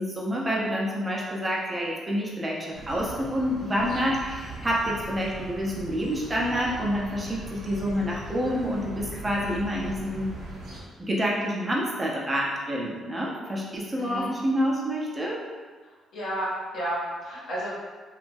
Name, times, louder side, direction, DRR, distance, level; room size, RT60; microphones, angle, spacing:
voice 1, 0.0-10.3 11.0-15.4, equal, 20° right, -3 dB, 0.6 m, -28 dB
sound 1, 2.7-10.8, right 1 dB, 75° right, 0.8 m, -40 dB
voice 2, 13.9-14.3 16.1-17.7, right 1 dB, 75° left, -8 dB, 0.9 m, -31 dB
2.8 x 2.3 x 2.6 m, 1.5 s
cardioid pair, 90°, 0 cm